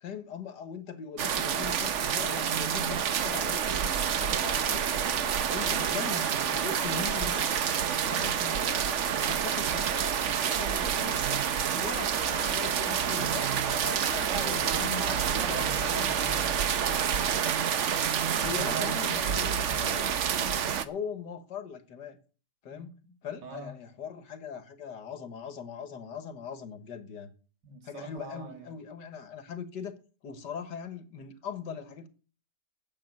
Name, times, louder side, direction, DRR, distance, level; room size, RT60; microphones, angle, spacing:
voice 1, 0.0-4.9 5.5-7.6 8.0-8.8 9.2-16.0 18.4-20.1 20.8-22.2 22.6-22.9 23.2-27.3 27.8-30.0 30.2-32.1, left 7 dB, 75° left, 1.9 m, -40 dB
sound 1, 1.2-20.8, right 8 dB, 55° right, 1.0 m, -28 dB
voice 2, 14.3-17.1 18.3-20.2 22.7-23.1 23.4-23.8 27.6-28.8, right 3 dB, 85° right, 2.7 m, -41 dB
8.7 x 8.0 x 9.2 m
omnidirectional pair, 1.8 m